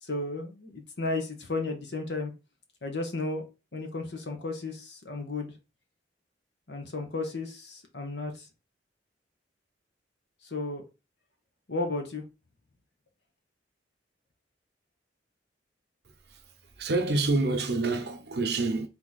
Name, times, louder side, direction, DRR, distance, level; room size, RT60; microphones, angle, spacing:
voice 1, 0.0-2.3 2.8-3.4 3.7-5.6 6.7-8.5 10.4-10.8 11.7-12.2, left 3 dB, 70° left, 1.1 m, -33 dB
voice 2, 16.8-18.9, right 3 dB, 65° right, 0.8 m, -27 dB
3.9 x 3.0 x 3.9 m
head